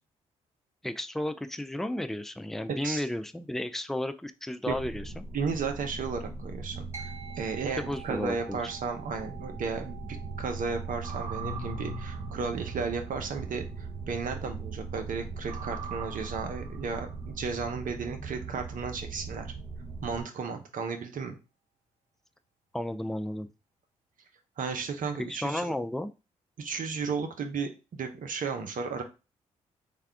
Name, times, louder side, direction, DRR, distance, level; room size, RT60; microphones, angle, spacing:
voice 1, 0.8-5.2 7.8-8.6 22.7-23.5 25.2-26.1, left 1 dB, ahead, 10 dB, 0.4 m, -33 dB
voice 2, 2.7-3.0 4.7-4.8 5.3-10.0 10.4-19.5 20.0-21.4 24.6-25.6 26.6-29.0, right 5 dB, 55° right, 5 dB, 0.8 m, -34 dB
sound 1, 4.7-20.2, right 3 dB, 35° right, 1.1 m, -39 dB
sound 2, 6.9-16.6, right 8 dB, 15° right, 1.3 m, -51 dB
3.4 x 2.3 x 3.5 m, 0.30 s
hypercardioid pair, 40°, 17 cm